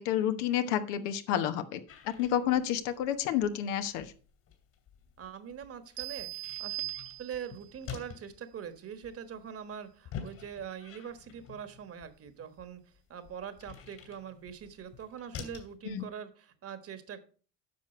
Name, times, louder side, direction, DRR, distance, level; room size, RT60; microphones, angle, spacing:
voice 1, 0.0-4.1 15.9-16.0, left 10 dB, 80° left, 10 dB, 1.0 m, -30 dB
sound 1, 1.9-15.7, left 7 dB, 60° left, 2.8 m, -49 dB
voice 2, 5.2-6.8 7.2-17.2, right 8 dB, 40° right, 11 dB, 1.4 m, -43 dB
sound 2, 6.0-7.7, right 21 dB, 85° right, 0.6 m, -39 dB
10.0 x 6.1 x 4.4 m, 0.39 s
supercardioid pair, 90°, 34 cm